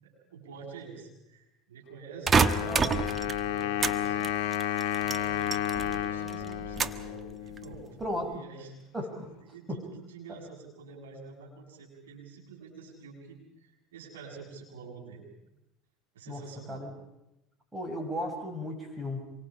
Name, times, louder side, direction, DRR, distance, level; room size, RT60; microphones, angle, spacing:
voice 1, 0.0-4.3 5.0-8.7 9.3-15.2 16.1-16.8, right 5 dB, 90° right, -1 dB, 7.6 m, -47 dB
Wind instrument woodwind instrument, 2.3-8.0, left 11 dB, 70° left, 1.6 m, -32 dB
sound 1, 2.3-4.0 4.2-6.0 6.3-7.1 7.6-8.1, right 5 dB, 30° right, 1.2 m, -27 dB
voice 2, 8.0-8.3 8.9-9.3 9.7-9.8 16.3-16.4 16.7-16.9 17.7-19.3, left 1 dB, 15° right, 3 dB, 7.0 m, -35 dB
27.0 x 24.0 x 5.1 m, 0.92 s
hypercardioid pair, 80°, 0 cm